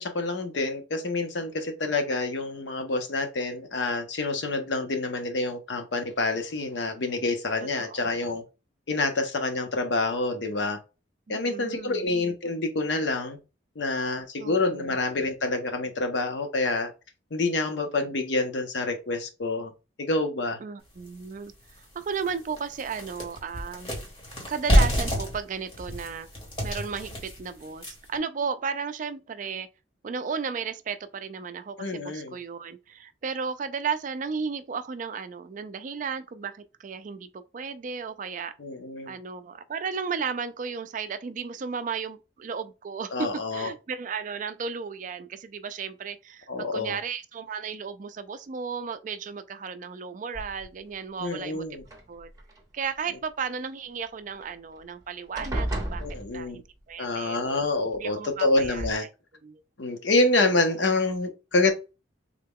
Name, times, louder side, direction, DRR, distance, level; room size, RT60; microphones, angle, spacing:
voice 1, 0.0-8.4 8.9-10.8 11.3-13.4 13.8-16.9 17.3-19.7 20.0-20.6 31.8-32.4 38.6-39.1 43.1-43.7 46.5-47.0 51.2-51.8 56.0-56.6 57.0-59.1 59.8-61.7, left 2 dB, 70° left, 0.7 m, -27 dB
voice 2, 7.8-8.4 11.3-12.0 14.4-15.0 20.6-21.5 21.9-23.9 24.5-26.3 26.6-29.7 30.0-38.5 39.1-51.6 52.1-52.3 52.7-56.0 56.3-56.6 56.9-57.6 58.0-58.9 59.4-59.6, right 6 dB, 45° right, 0.3 m, -34 dB
sound 1, 21.1-21.2 21.7-21.8 22.1-28.2, equal, 30° left, 1.3 m, -27 dB
sound 2, 50.3-50.9 51.8-52.6 54.4-54.5 54.8-55.0 55.3-56.8 57.9-58.0 58.6-58.9, right 1 dB, 20° right, 0.9 m, -34 dB
3.6 x 2.2 x 3.5 m
head